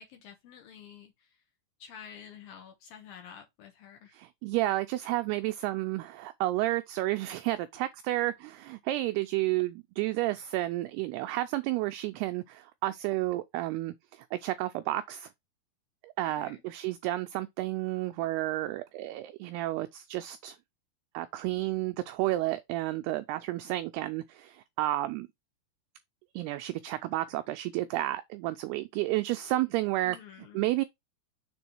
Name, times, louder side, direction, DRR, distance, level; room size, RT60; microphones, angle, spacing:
voice 1, 0.0-1.4 1.8-4.2 16.2-16.6 30.0-30.6, left 8 dB, 70° left, 2.5 m, -50 dB
voice 2, 4.1-15.3 16.0-20.6 21.1-25.3 26.3-30.2 30.5-30.8, right 16 dB, 85° right, 2.3 m, -31 dB
6.9 x 3.5 x 4.4 m
omnidirectional pair, 5.0 m